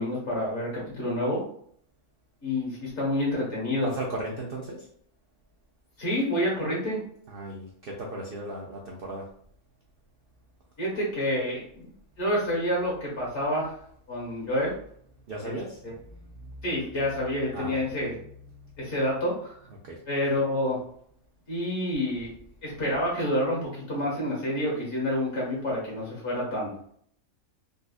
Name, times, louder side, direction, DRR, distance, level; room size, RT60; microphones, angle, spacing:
voice 1, 0.0-1.4 2.4-3.9 6.0-7.0 10.8-11.9 12.2-13.8 14.1-14.7 15.4-15.6 16.6-18.1 18.8-19.5 20.1-20.8 21.5-22.3 22.6-26.7, left 1 dB, 50° left, -4 dB, 1.6 m, -28 dB
voice 2, 3.8-4.9 7.3-9.3 15.3-16.7 17.5-18.9 19.7-20.0, right 1 dB, 65° right, -1 dB, 0.5 m, -37 dB
4.0 x 2.4 x 2.3 m, 0.64 s
omnidirectional pair, 1.6 m